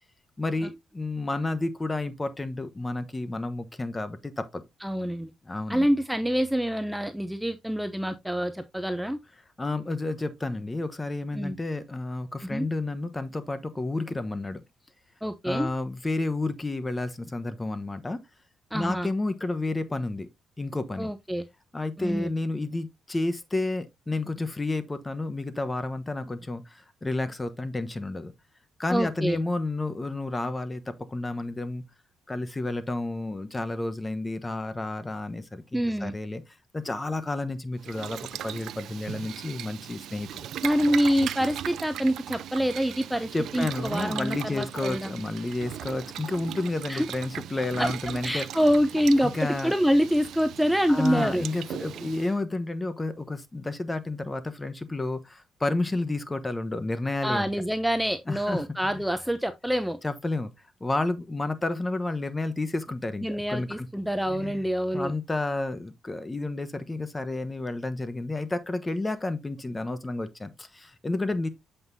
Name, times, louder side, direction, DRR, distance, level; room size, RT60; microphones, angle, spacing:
voice 1, 0.4-4.6 5.4-5.9 9.6-14.6 15.4-18.2 18.7-20.3 20.6-21.1 21.7-28.3 28.8-31.8 32.3-36.4 36.7-40.5 43.3-48.5 49.2-49.7 50.9-57.5 58.3-59.0 60.0-60.5 60.8-63.9 64.3-64.6 64.9-71.5, left 2 dB, 20° left, 1.0 m, -31 dB
voice 2, 4.8-5.3 5.7-9.2 11.3-11.6 12.4-12.7 15.2-15.7 18.7-19.1 21.0-21.4 22.0-22.3 28.9-29.4 35.7-36.1 40.6-45.1 46.9-47.1 47.8-47.9 48.2-49.3 49.6-51.5 57.2-60.0 63.2-65.1, equal, 5° right, 0.6 m, -26 dB
Boiling, 37.8-52.3, right 11 dB, 75° right, 0.4 m, -38 dB
7.8 x 5.5 x 2.7 m
cardioid pair, 90°, 0 cm